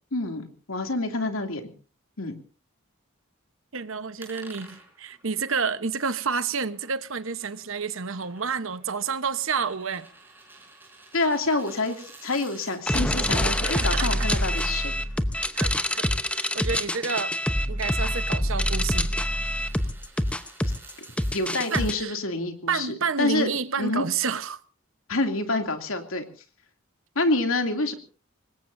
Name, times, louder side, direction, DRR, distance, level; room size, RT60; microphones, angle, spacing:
voice 1, 0.1-1.7 2.2-2.3 11.1-11.9 12.2-14.9 21.3-23.5 23.8-24.0 25.1-26.2 27.2-27.9, left 2 dB, 75° left, 2.7 m, -27 dB
voice 2, 3.7-10.1 13.6-14.3 15.5-16.0 16.3-17.4 17.7-19.1 21.7-22.2 22.7-24.6, right 5 dB, 70° right, 1.1 m, -29 dB
sound 1, 4.2-12.8 14.3-21.9, right 2 dB, 10° right, 5.0 m, -51 dB
sound 2, 12.9-21.9, left 1 dB, 5° left, 0.8 m, -26 dB
25.5 x 20.5 x 2.7 m
head